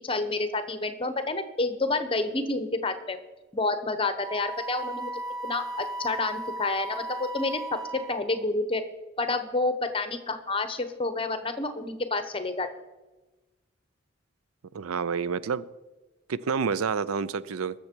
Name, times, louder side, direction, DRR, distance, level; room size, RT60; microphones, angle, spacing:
voice 1, 0.0-3.2 3.5-5.1 5.4-8.8 9.2-12.7, left 2 dB, 25° left, 9 dB, 0.8 m, -29 dB
Wind instrument woodwind instrument, 4.2-8.4, right 1 dB, 15° right, 0.6 m, -36 dB
voice 2, 14.7-15.7 16.3-17.8, right 5 dB, 90° right, 17 dB, 0.5 m, -28 dB
20.5 x 7.0 x 4.5 m, 1.1 s
head